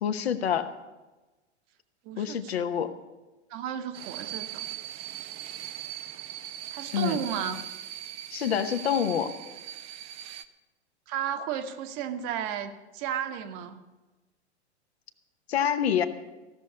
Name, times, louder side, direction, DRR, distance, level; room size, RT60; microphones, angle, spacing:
voice 1, 0.0-0.7 2.2-2.9 6.9-7.2 8.3-9.3 15.5-16.0, left 9 dB, 65° left, 9 dB, 1.1 m, -26 dB
voice 2, 2.0-2.7 3.5-4.6 6.7-7.6 11.1-13.8, right 9 dB, 40° right, 8 dB, 1.0 m, -33 dB
sound 1, 3.9-10.4, right 12 dB, 20° right, 0.3 m, -40 dB
15.5 x 6.3 x 8.5 m, 1.2 s
figure-of-eight pair, 100°, 34 cm